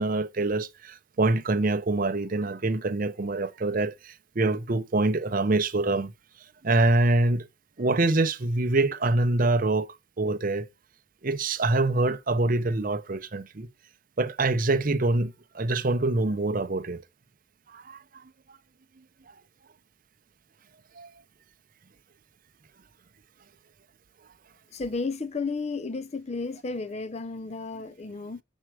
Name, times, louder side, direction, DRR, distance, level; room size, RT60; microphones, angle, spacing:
voice 1, 0.0-6.1 6.6-7.5 7.8-10.7 11.2-13.7 14.2-17.0 17.7-18.0 21.0-21.1, right 2 dB, 45° right, 0.7 m, -25 dB
voice 2, 24.7-28.4, left 4 dB, 35° left, 0.5 m, -33 dB
7.2 x 4.6 x 6.1 m
head